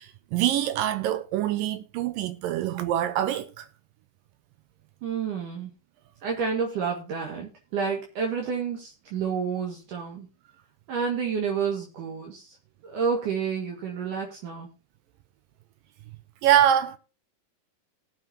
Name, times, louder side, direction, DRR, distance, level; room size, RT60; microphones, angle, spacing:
voice 1, 0.0-3.7 16.4-17.0, right 11 dB, 80° right, 2.4 m, -24 dB
voice 2, 5.0-5.7 6.2-10.3 10.9-12.6 12.8-14.7, right 6 dB, 65° right, 3.3 m, -29 dB
18.5 x 7.4 x 2.8 m
omnidirectional pair, 4.0 m